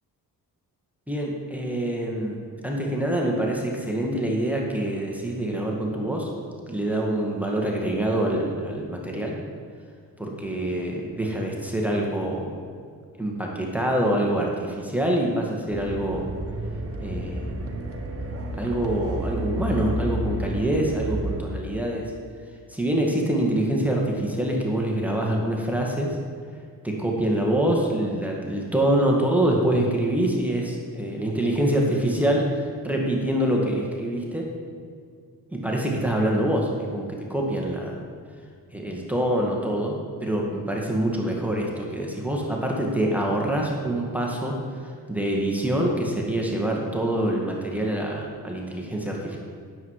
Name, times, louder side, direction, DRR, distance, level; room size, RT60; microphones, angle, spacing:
voice 1, 1.1-6.3 6.7-9.4 10.2-12.5 13.2-16.3 17.0-17.6 18.6-22.0 22.7-26.2 26.8-34.5 35.5-38.0 38.7-44.5 45.1-49.4, right 1 dB, 5° right, -1 dB, 1.8 m, -25 dB
sound 1, 15.7-21.4, equal, 35° right, 1.3 m, -31 dB
9.5 x 7.6 x 4.8 m, 2.2 s
cardioid pair, 65°, 38 cm